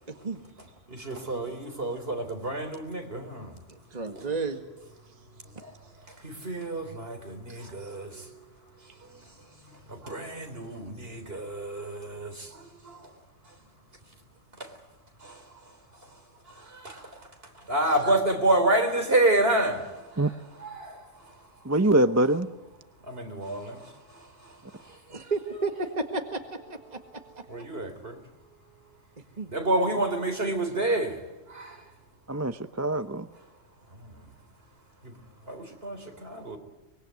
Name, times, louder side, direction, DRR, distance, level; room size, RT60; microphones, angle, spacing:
voice 1, 1.0-3.5 6.2-8.1 10.0-12.3 16.8-17.0 17.7-19.8 20.6-20.9 23.1-23.8 27.5-28.2 29.5-31.2 31.5-31.7 35.5-36.6, right 1 dB, 55° right, 4.1 m, -28 dB
voice 2, 3.7-4.6 7.5-7.9 18.0-18.1 25.1-26.4 26.9-27.0 29.4-29.5, right 3 dB, 35° right, 2.0 m, -32 dB
voice 3, 21.7-22.5 32.3-33.3, right 1 dB, 15° right, 0.7 m, -23 dB
25.0 x 22.5 x 9.4 m
omnidirectional pair, 1.2 m